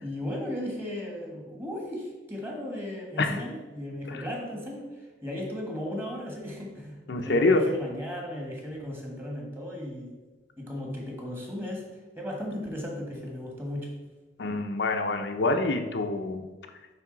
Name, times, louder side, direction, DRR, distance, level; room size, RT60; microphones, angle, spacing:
voice 1, 0.0-10.1 10.6-11.8 12.1-13.9, left 1 dB, 15° right, -1 dB, 1.4 m, -36 dB
voice 2, 7.1-7.6 14.4-16.5, left 2 dB, 70° left, 5 dB, 0.6 m, -26 dB
9.3 x 3.7 x 3.9 m, 1.2 s
head